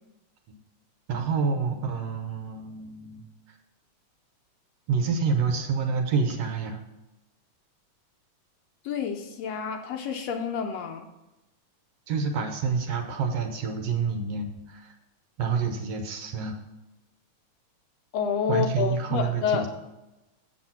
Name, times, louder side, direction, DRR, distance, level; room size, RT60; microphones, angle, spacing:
voice 1, 1.1-3.2 4.9-6.8 12.1-14.9 15.4-16.6 18.5-19.7, right 5 dB, 65° right, 4 dB, 1.9 m, -28 dB
voice 2, 8.8-11.1 18.1-19.7, left 7 dB, 75° left, 5 dB, 1.7 m, -28 dB
7.8 x 7.3 x 5.8 m, 0.99 s
omnidirectional pair, 3.3 m